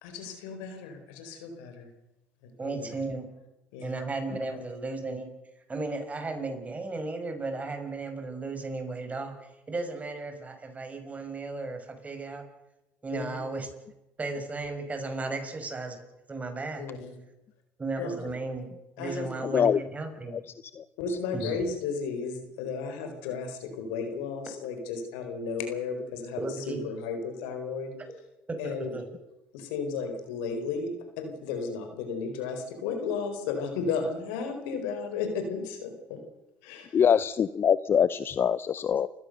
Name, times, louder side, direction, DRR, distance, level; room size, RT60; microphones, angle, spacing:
voice 1, 0.0-1.9 2.4-2.9 3.7-4.0 4.5-4.6 13.1-13.4 16.8-17.1 18.0-18.3 19.0-19.3 21.0-26.4 26.7-27.9 28.6-28.9 29.5-30.9 31.2-36.2 36.6-37.0, left 5 dB, 90° left, 6 dB, 4.5 m, -34 dB
voice 2, 2.6-3.3 3.8-5.3 5.7-9.3 9.7-12.4 13.0-13.7 14.2-16.0 16.3-16.8 17.8-18.7 19.0-20.4 21.3-21.6 26.4-26.8 28.5-29.1, right 3 dB, 25° right, 6 dB, 5.6 m, -35 dB
voice 3, 19.4-19.8 20.3-20.4 20.8-20.9 36.9-39.1, left 8 dB, 45° left, 16 dB, 0.7 m, -24 dB
29.5 x 15.5 x 6.6 m, 0.97 s
supercardioid pair, 80°, 5 cm